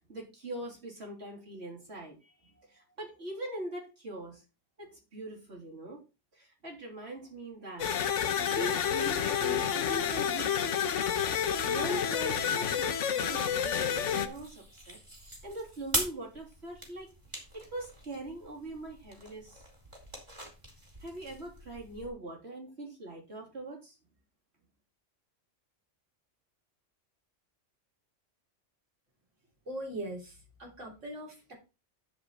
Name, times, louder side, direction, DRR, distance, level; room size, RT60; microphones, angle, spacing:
voice 1, 0.1-4.4 4.8-6.0 6.3-7.9 8.4-10.9 11.6-17.1 17.5-19.6 21.0-24.0, right 1 dB, 60° right, -2 dB, 3.4 m, -42 dB
sound 1, 7.8-14.3, left 8 dB, 75° left, 1.2 m, -29 dB
sound 2, 13.3-22.1, right 1 dB, 25° right, 2.7 m, -42 dB
voice 2, 29.7-31.5, right 1 dB, 75° right, -2 dB, 3.8 m, -41 dB
10.0 x 5.1 x 4.1 m, 0.30 s
omnidirectional pair, 1.3 m